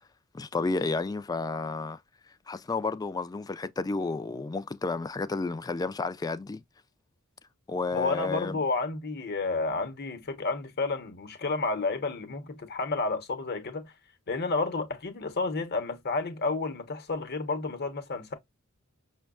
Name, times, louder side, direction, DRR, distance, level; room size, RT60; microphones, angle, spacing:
voice 1, 0.3-2.0 2.5-6.6 7.7-8.6, left 3 dB, 20° left, 0.3 m, -31 dB
voice 2, 7.9-13.9 14.3-18.3, left 3 dB, 50° left, 0.9 m, -31 dB
6.1 x 2.2 x 2.3 m
head